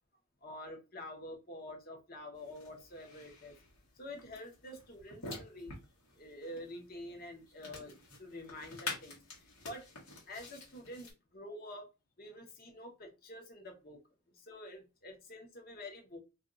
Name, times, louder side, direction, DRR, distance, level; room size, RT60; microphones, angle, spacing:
voice 1, 0.4-3.5 4.0-5.8 6.1-7.9 8.2-9.9 10.2-11.9 12.2-14.0 14.3-16.2, left 1 dB, 45° left, 2 dB, 0.9 m, -48 dB
sound 1, 2.4-11.1, left 3 dB, 85° left, 1.3 m, -48 dB
2.6 x 2.3 x 3.7 m, 0.27 s
head